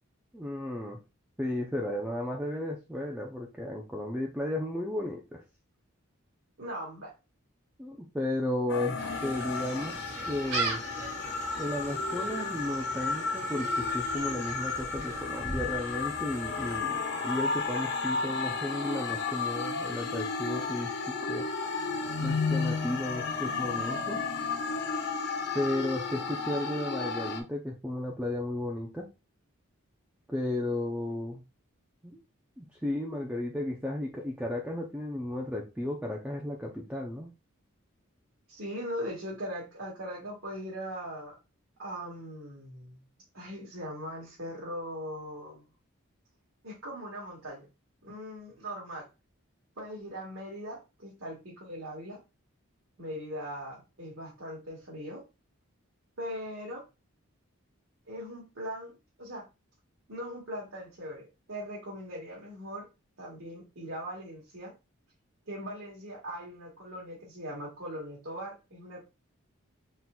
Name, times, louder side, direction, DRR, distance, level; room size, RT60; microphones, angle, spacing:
voice 1, 0.3-1.0 1.4-5.4 7.8-9.9 10.3-10.8 11.6-21.9 22.2-24.5 25.5-29.1 30.3-31.4 32.0-32.2 32.6-37.3, left 1 dB, 5° right, -1 dB, 0.4 m, -34 dB
voice 2, 6.6-7.1 38.5-41.4 41.8-43.0 43.3-45.6 46.6-47.7 48.0-49.1 49.8-52.2 53.0-55.2 56.2-56.8 58.1-59.5 60.1-62.9 63.2-64.7 65.5-69.0, equal, 75° right, -6 dB, 1.7 m, -40 dB
sound 1, 8.7-27.4, left 4 dB, 50° left, 0.7 m, -33 dB
Gull seagull, 9.0-16.8, right 3 dB, 45° right, 1.6 m, -39 dB
4.3 x 3.8 x 2.2 m, 0.27 s
head